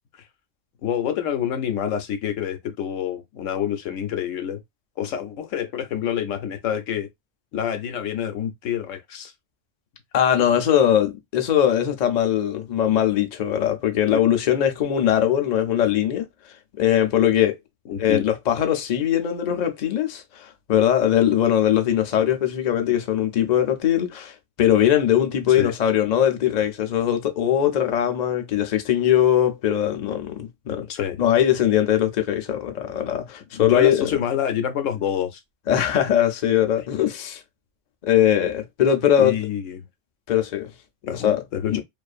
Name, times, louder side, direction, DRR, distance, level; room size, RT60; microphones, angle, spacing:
voice 1, 0.8-4.6 5.0-7.1 7.5-9.3 14.1-14.2 17.9-18.3 25.4-25.7 30.9-31.2 33.5-35.4 39.2-39.8 41.0-41.8, left 9 dB, 80° left, 1.0 m, -27 dB
voice 2, 10.1-16.3 16.8-17.6 18.0-30.9 31.2-34.2 35.7-37.4 38.1-39.4 40.3-40.7 41.1-41.4 41.7-41.8, left 10 dB, 50° left, 0.5 m, -21 dB
2.6 x 2.4 x 2.3 m
omnidirectional pair, 1.3 m